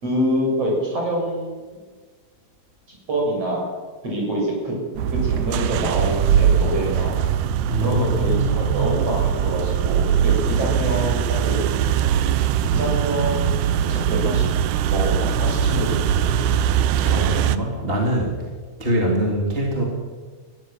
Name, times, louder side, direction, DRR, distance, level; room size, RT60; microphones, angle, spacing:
voice 1, 0.0-1.6 2.9-3.7 4.0-4.7 5.1-7.2 7.8-11.6 12.7-13.5 13.8-14.5 14.9-16.4 16.8-17.8, right 1 dB, 45° right, -2 dB, 8.4 m, -26 dB
sound 1, 5.0-17.6, right 9 dB, 75° right, 2.1 m, -21 dB
voice 2, 7.7-8.9 17.1-18.4 18.8-19.8, right 1 dB, 15° right, -1 dB, 3.3 m, -23 dB
21.5 x 16.5 x 7.7 m, 1.4 s
omnidirectional pair, 4.0 m